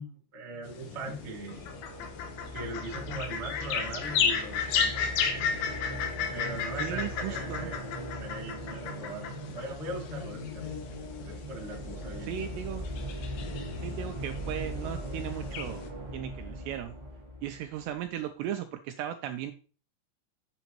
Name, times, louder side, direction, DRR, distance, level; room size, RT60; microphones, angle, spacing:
voice 1, 0.0-1.7 2.5-5.0 6.3-7.8 8.2-10.7 11.2-12.3, right 2 dB, 50° right, -4 dB, 0.7 m, -40 dB
sound 1, 0.7-15.9, left 6 dB, 80° left, 3.3 m, -34 dB
sound 2, 1.1-18.0, equal, 20° right, 1.6 m, -40 dB
voice 2, 6.8-7.7 12.2-12.9 13.8-15.9 16.1-16.9 17.4-19.5, right 11 dB, 85° right, 7 dB, 2.4 m, -36 dB
8.2 x 7.8 x 3.0 m, 0.39 s
omnidirectional pair, 5.3 m